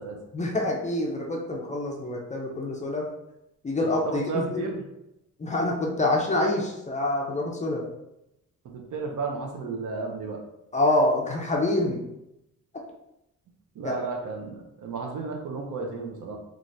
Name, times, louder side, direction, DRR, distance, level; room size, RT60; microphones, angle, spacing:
voice 1, 0.3-3.1 3.6-4.7 5.4-7.8 10.7-12.0 13.8-14.0, left 2 dB, 25° left, -1 dB, 0.4 m, -26 dB
voice 2, 4.0-4.8 8.6-10.4 13.7-16.4, right 4 dB, 70° right, 1 dB, 0.6 m, -33 dB
3.1 x 2.5 x 2.6 m, 0.87 s
wide cardioid pair, 155°, 32 cm